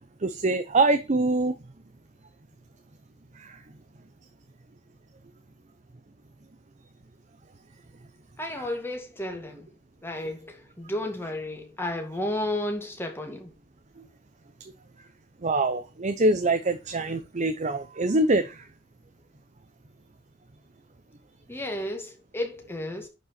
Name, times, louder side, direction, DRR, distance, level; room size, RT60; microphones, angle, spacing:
voice 1, 0.2-1.5 15.4-18.5, right 2 dB, 35° right, 0.7 m, -24 dB
voice 2, 8.4-9.7 10.0-13.5 21.5-23.1, left 1 dB, 10° left, 2.1 m, -32 dB
11.0 x 5.3 x 4.3 m
head